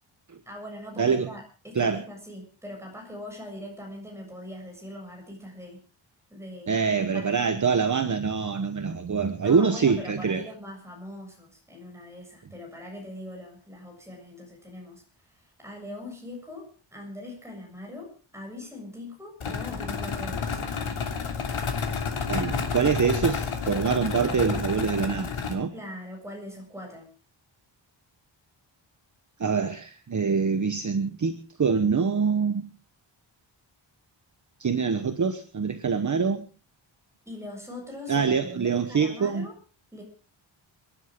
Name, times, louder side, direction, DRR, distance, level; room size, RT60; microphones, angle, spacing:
voice 1, 0.5-5.8 6.3-6.8 7.1-7.6 9.4-20.6 25.7-27.1 37.3-39.5 39.9-40.0, left 1 dB, 5° right, 0 dB, 7.2 m, -41 dB
voice 2, 1.0-1.3 1.7-2.0 6.7-10.4 22.3-25.7 29.4-32.6 34.6-36.5 38.1-39.5, right 5 dB, 40° right, 8 dB, 1.1 m, -25 dB
sound 1, 19.4-25.5, left 5 dB, 90° left, 3.1 m, -30 dB
29.0 x 11.0 x 3.7 m, 0.36 s
wide cardioid pair, 160°, 48 cm